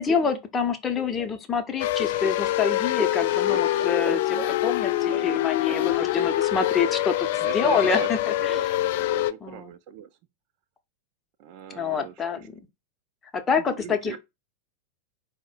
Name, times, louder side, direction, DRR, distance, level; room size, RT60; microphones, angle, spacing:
voice 1, 0.0-4.2 4.6-8.7 9.4-9.7 11.7-12.5 13.3-14.2, left 5 dB, 20° left, 0.7 m, -27 dB
sound 1, 1.8-9.3, left 15 dB, 50° left, 0.3 m, -25 dB
voice 2, 4.0-4.6 5.1-5.3 5.7-6.3 7.4-8.1 8.4-10.1 11.4-12.5 13.5-14.2, right 9 dB, 45° right, 0.5 m, -39 dB
4.6 x 2.1 x 4.3 m
figure-of-eight pair, 90°, 0 cm